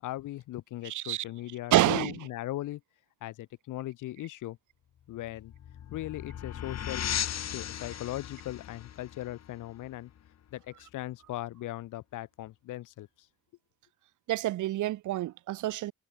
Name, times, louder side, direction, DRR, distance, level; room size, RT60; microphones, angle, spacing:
voice 1, 0.0-2.8 3.2-4.6 5.1-5.5 5.9-7.1 7.5-10.1 10.5-13.1, left 15 dB, 90° left, 6.0 m, -38 dB
voice 2, 0.8-1.2 1.7-2.2 14.3-15.9, right 15 dB, 75° right, 1.1 m, -27 dB
sound 1, 5.1-10.5, left 10 dB, 60° left, 2.7 m, -37 dB
cardioid pair, 90°, 30 cm